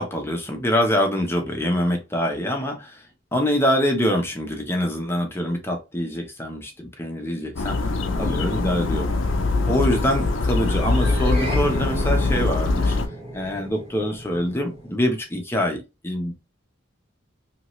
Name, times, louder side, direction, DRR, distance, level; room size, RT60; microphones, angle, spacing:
voice 1, 0.0-3.0 3.3-7.8 8.2-9.1 9.7-13.0 13.3-16.3, equal, 10° left, 0.8 m, -24 dB
sound 1, 7.6-13.1, left 3 dB, 75° left, 0.6 m, -23 dB
sound 2, 10.7-15.2, equal, 30° right, 1.4 m, -34 dB
2.9 x 2.7 x 3.1 m
head